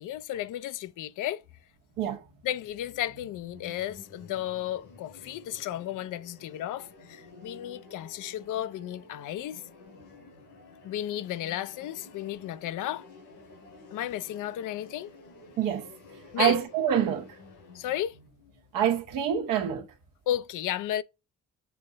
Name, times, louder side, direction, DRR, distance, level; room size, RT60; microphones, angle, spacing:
voice 1, 0.0-1.4 2.4-9.6 10.8-13.1 13.9-15.1 16.3-16.6 17.7-18.2 20.3-21.0, left 12 dB, 70° left, 0.6 m, -33 dB
sound 1, 1.7-19.5, left 3 dB, 85° left, 3.4 m, -52 dB
voice 2, 15.6-15.9 16.4-17.3 18.7-19.9, right 9 dB, 80° right, 1.2 m, -26 dB
7.0 x 3.8 x 3.9 m
supercardioid pair, 65°, 33 cm